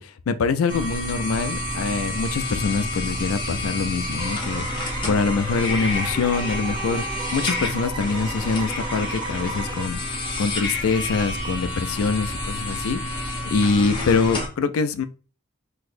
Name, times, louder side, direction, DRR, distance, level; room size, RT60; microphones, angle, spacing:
voice 1, 0.0-15.1, left 4 dB, 75° left, 0.4 m, -24 dB
sound 1, 0.7-14.5, left 1 dB, 25° left, 0.9 m, -29 dB
sound 2, 4.2-9.9, right 2 dB, 25° right, 0.4 m, -35 dB
3.9 x 2.7 x 2.5 m
head